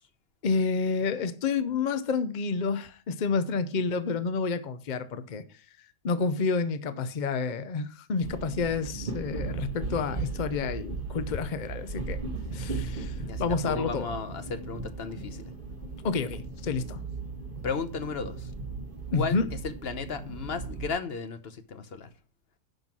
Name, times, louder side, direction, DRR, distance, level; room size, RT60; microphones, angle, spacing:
voice 1, 0.4-5.4 6.0-12.2 12.5-14.1 16.0-17.0 19.1-19.5, left 4 dB, 65° left, 0.4 m, -29 dB
sound 1, 8.2-20.9, right 4 dB, 35° right, 1.6 m, -37 dB
voice 2, 13.2-15.4 17.6-18.4 19.1-19.4 19.6-22.1, left 5 dB, 45° left, 0.9 m, -34 dB
10.5 x 5.6 x 6.1 m
omnidirectional pair, 1.7 m